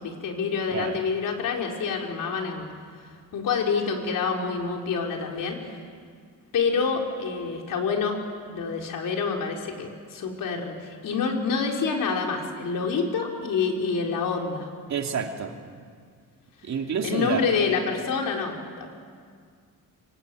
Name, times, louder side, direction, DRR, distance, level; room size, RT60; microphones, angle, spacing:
voice 1, 0.0-2.7 3.3-5.8 6.5-8.2 8.5-14.7 17.0-18.9, left 5 dB, 70° left, 1 dB, 4.5 m, -27 dB
voice 2, 14.9-15.5 16.6-17.5, right 6 dB, 55° right, 3 dB, 2.8 m, -29 dB
24.5 x 24.5 x 9.3 m, 2.1 s
cardioid pair, 125°, 34 cm